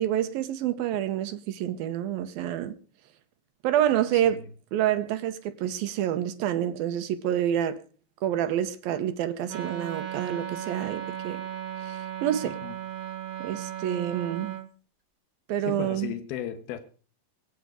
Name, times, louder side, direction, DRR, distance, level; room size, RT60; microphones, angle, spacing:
voice 1, 0.0-2.7 3.6-4.4 4.7-7.8 8.2-11.4 11.8-12.6 13.4-14.6 15.5-16.1, right 11 dB, 85° right, 2.8 m, -28 dB
voice 2, 4.1-4.4 12.6-12.7 15.6-16.8, left 11 dB, 90° left, 3.1 m, -35 dB
Wind instrument woodwind instrument, 9.5-14.7, right 10 dB, 40° right, 0.7 m, -36 dB
23.5 x 9.4 x 5.1 m
omnidirectional pair, 4.2 m